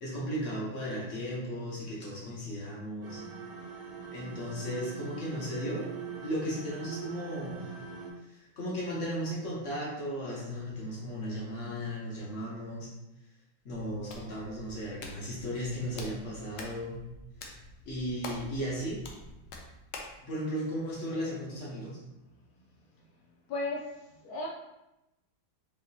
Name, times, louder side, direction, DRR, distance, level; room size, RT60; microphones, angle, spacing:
voice 1, 0.0-3.2 4.1-5.9 6.2-7.7 8.3-12.9 13.6-17.0 17.9-19.0 20.2-22.0, equal, 45° left, -5 dB, 1.1 m, -35 dB
sound 1, 3.0-8.1, right 5 dB, 85° right, 1.7 m, -42 dB
Hands, 13.7-20.2, left 3 dB, 70° left, 1.0 m, -47 dB
voice 2, 23.5-24.5, left 2 dB, 90° left, -2 dB, 0.8 m, -35 dB
4.9 x 2.8 x 2.7 m, 0.92 s
omnidirectional pair, 2.3 m